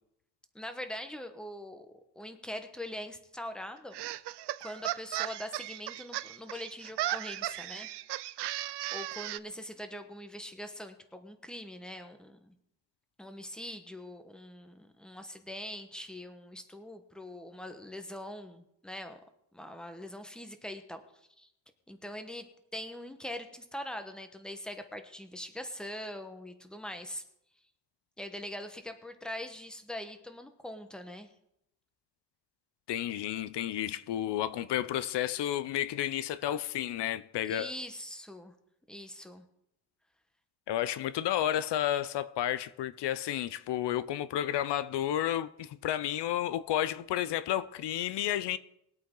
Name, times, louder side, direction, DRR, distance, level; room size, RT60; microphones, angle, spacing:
voice 1, 0.5-4.0 4.6-7.9 8.9-12.5 13.2-19.2 19.5-21.0 21.4-21.5 21.9-22.5 22.7-27.2 28.2-31.3 37.5-38.5 38.9-39.4, left 1 dB, ahead, 1.1 m, -42 dB
sound 1, 3.9-9.4, right 15 dB, 80° right, 0.5 m, -36 dB
voice 2, 32.9-37.7 40.7-48.6, left 11 dB, 90° left, 0.6 m, -31 dB
21.5 x 8.4 x 3.8 m
wide cardioid pair, 125°, 40 cm